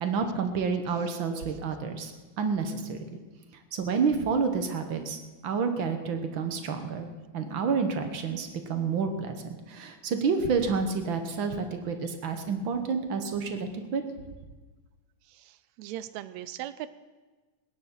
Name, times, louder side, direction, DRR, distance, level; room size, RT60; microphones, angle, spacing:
voice 1, 0.0-3.0 3.7-5.2 5.4-7.1 7.3-9.4 9.7-14.0, right 5 dB, 60° right, 7 dB, 1.3 m, -29 dB
voice 2, 15.3-16.9, right 13 dB, 80° right, 15 dB, 1.6 m, -39 dB
18.0 x 10.5 x 7.2 m, 1.3 s
omnidirectional pair, 3.8 m